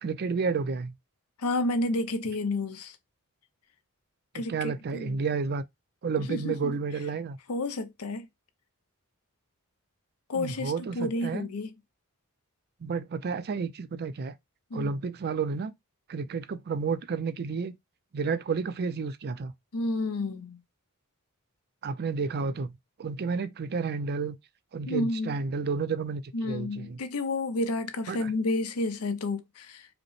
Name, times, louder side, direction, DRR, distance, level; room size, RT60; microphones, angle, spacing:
voice 1, 0.0-0.9 4.4-5.6 6.0-7.4 10.3-11.5 12.8-14.3 14.7-15.7 16.1-17.8 18.1-19.5 21.8-22.7 23.0-24.4 24.7-27.0 28.1-28.3, right 5 dB, 45° right, 0.4 m, -31 dB
voice 2, 1.4-3.0 4.3-5.2 6.2-6.7 7.5-8.3 10.3-11.7 14.7-14.9 19.7-20.6 24.9-25.4 26.3-29.9, left 2 dB, 85° left, 0.7 m, -30 dB
4.9 x 2.1 x 3.1 m
head